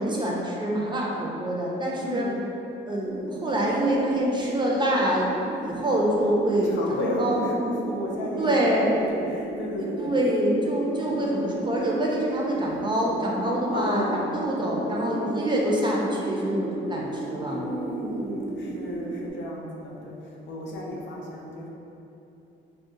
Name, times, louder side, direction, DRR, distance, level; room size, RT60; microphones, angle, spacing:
voice 1, 0.0-2.2 2.9-5.3 5.6-6.8 7.2-7.4 8.4-8.9 10.0-17.6, right 1 dB, 25° right, -3 dB, 0.5 m, -25 dB
voice 2, 2.0-2.4 6.6-10.1 13.7-14.2 15.0-15.5 17.5-21.7, left 1 dB, 70° left, -3 dB, 0.6 m, -33 dB
sound 1, 3.0-19.3, right 2 dB, 85° right, 0.4 m, -35 dB
2.7 x 2.2 x 3.7 m, 2.8 s
cardioid pair, 90°, 20 cm